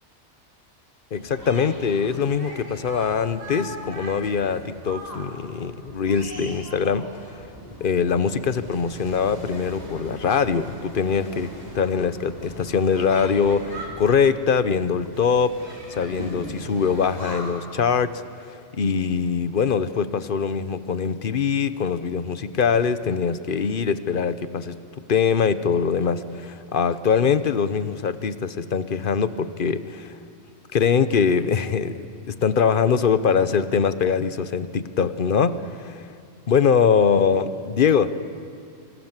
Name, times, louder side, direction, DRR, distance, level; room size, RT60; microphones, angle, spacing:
voice 1, 1.1-7.1 7.8-18.2 18.5-24.8 25.1-30.1 30.7-36.1 36.5-38.1, left 6 dB, 50° left, 13 dB, 1.0 m, -23 dB
sound 1, 1.1-17.5, equal, 35° right, 5.3 m, -40 dB
26.5 x 26.0 x 7.4 m, 2.5 s
omnidirectional pair, 1.2 m